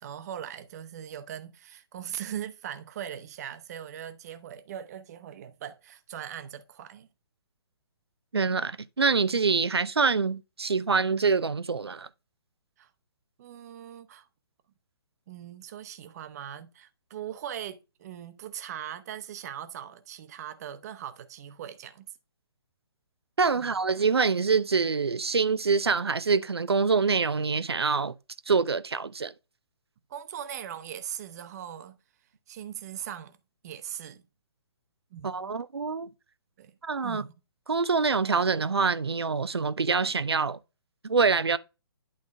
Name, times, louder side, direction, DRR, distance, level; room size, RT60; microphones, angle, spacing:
voice 1, 0.0-7.1 12.8-12.9 13.4-14.3 15.3-22.1 23.5-23.7 30.1-32.0 32.5-33.4 33.6-34.2 35.1-35.6 36.6-36.8 37.0-37.3, right 10 dB, 40° right, 1.0 m, -40 dB
voice 2, 8.3-12.1 23.4-28.1 28.5-29.3 35.2-36.1 36.8-37.2 37.7-40.6 41.0-41.6, right 4 dB, 80° right, 0.6 m, -25 dB
11.0 x 3.7 x 3.4 m
figure-of-eight pair, 135°, 13 cm